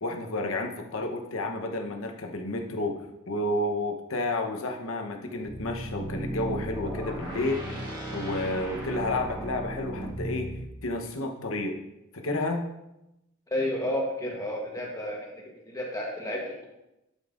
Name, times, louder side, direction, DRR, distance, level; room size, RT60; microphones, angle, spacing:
voice 1, 0.0-7.8 8.1-10.5 10.8-11.8 12.1-12.7, left 2 dB, 70° left, 3 dB, 0.9 m, -31 dB
sound 1, 5.4-10.6, right 1 dB, 20° right, 1.6 m, -35 dB
voice 2, 13.5-15.3 15.7-16.7, left 1 dB, 15° left, -1 dB, 1.1 m, -31 dB
11.5 x 5.4 x 2.5 m, 0.92 s
head